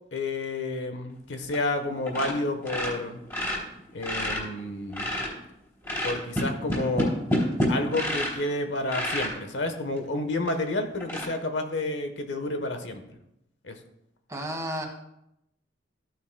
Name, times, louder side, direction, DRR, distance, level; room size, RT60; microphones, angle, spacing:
voice 1, 0.1-3.2 3.9-5.2 6.0-7.1 7.7-13.0 13.6-13.8, left 2 dB, 70° left, 6 dB, 1.1 m, -30 dB
sound 1, 1.4-1.8 2.1-2.4 2.6-5.4 5.8-8.5 8.8-9.3 10.0-10.1 10.5-10.6 11.0-11.2, equal, 15° left, 3.3 m, -28 dB
voice 2, 14.3-14.9, right 1 dB, 15° right, 2 dB, 1.6 m, -32 dB
14.0 x 9.2 x 2.3 m, 0.82 s
head